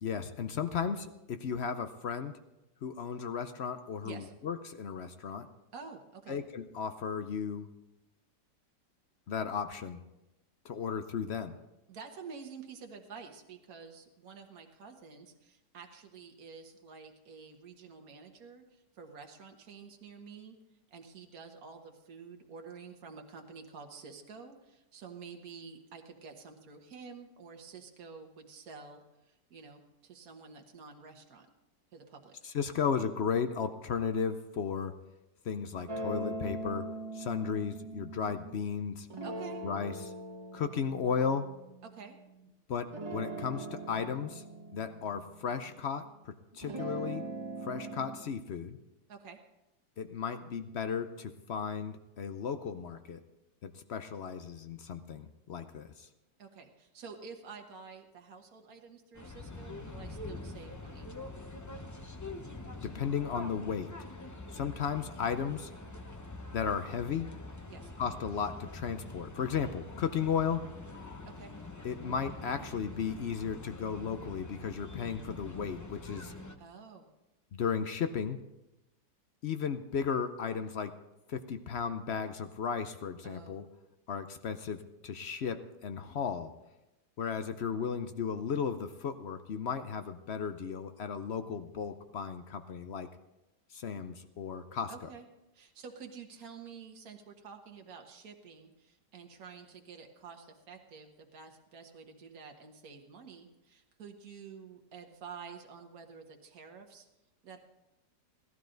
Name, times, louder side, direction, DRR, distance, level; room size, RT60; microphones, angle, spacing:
voice 1, 0.0-2.3 2.8-5.5 6.3-7.7 9.3-10.0 10.6-11.5 32.4-35.0 35.4-36.9 37.1-39.1 39.6-40.1 40.5-41.5 42.7-44.4 44.7-47.2 47.6-48.8 50.0-53.2 53.6-56.1 62.8-63.9 64.5-65.7 66.5-67.3 68.0-70.6 71.8-76.3 77.5-78.4 79.4-81.0 81.3-83.7 84.1-86.5 87.2-93.1 93.7-94.9, left 6 dB, 60° left, 9 dB, 0.6 m, -35 dB
voice 2, 5.7-6.4 11.9-20.6 20.9-31.5 31.9-32.4 39.2-39.6 41.8-42.2 49.1-49.4 56.4-61.1 67.7-67.9 71.3-71.6 76.6-77.1 83.2-83.6 94.9-95.3 95.5-107.1 107.4-107.6, right 5 dB, 60° right, 3 dB, 1.8 m, -49 dB
sound 1, 35.9-38.5 39.1-42.5 42.9-46.1 46.5-48.2, right 2 dB, 20° right, 1.3 m, -41 dB
sound 2, 59.1-76.6, left 2 dB, 25° left, 0.4 m, -45 dB
17.5 x 12.5 x 3.9 m, 0.95 s
omnidirectional pair, 1.8 m